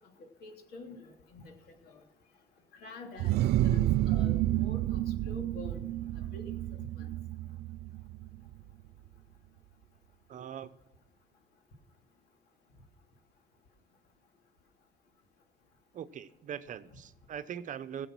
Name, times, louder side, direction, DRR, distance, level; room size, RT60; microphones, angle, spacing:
voice 1, 0.4-1.4 1.8-2.0 2.8-5.8 6.3-6.6 7.0-7.1, left 2 dB, 70° left, 2 dB, 3.0 m, -47 dB
sound 1, 3.2-8.7, right 14 dB, 75° right, 0.4 m, -30 dB
voice 2, 10.3-10.7 15.9-18.1, right 9 dB, 50° right, 12 dB, 0.8 m, -41 dB
17.0 x 7.6 x 6.1 m, 0.87 s
cardioid pair, 110°, 17 cm